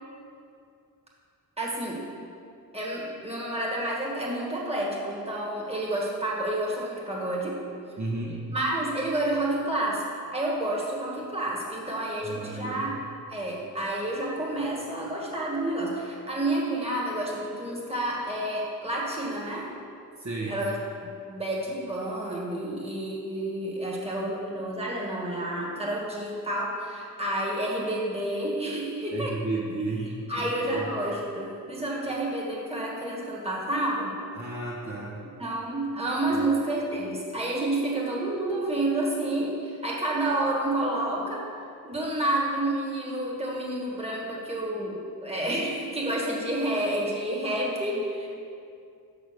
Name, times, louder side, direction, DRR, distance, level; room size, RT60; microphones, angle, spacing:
voice 1, 1.6-2.0 2.7-7.6 8.5-10.1 10.3-12.9 13.3-19.7 20.5-20.8 21.0-29.4 30.3-34.1 35.4-41.4 41.8-48.3, right 1 dB, 15° right, -4 dB, 1.7 m, -29 dB
voice 2, 8.0-8.4 12.2-12.8 20.2-20.6 29.1-30.9 34.4-35.2 36.3-36.4, right 2 dB, 45° right, -5 dB, 1.3 m, -33 dB
6.1 x 5.0 x 6.7 m, 2.4 s
wide cardioid pair, 75°, 38 cm